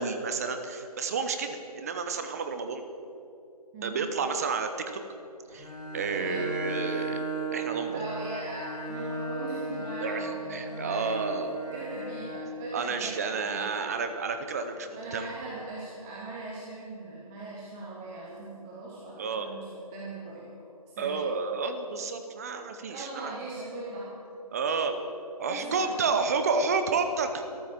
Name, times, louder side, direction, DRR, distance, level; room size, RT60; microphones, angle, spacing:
voice 1, 0.0-2.8 3.8-5.0 5.5-7.2 7.5-8.1 10.0-11.6 12.7-15.3 19.2-19.5 21.0-23.3 24.5-24.9 25.4-27.6, right 4 dB, 25° right, 7 dB, 0.8 m, -30 dB
voice 2, 3.7-4.0 6.1-6.5 7.9-11.3 11.6-13.9 14.9-20.4 21.0-21.2 22.9-24.2 24.7-25.0 25.5-26.2, right 2 dB, 5° right, -6 dB, 0.4 m, -40 dB
Bowed string instrument, 5.5-12.6, right 2 dB, 85° left, 4.2 m, -36 dB
13.5 x 11.0 x 7.3 m, 2.7 s
figure-of-eight pair, 155°, 20 cm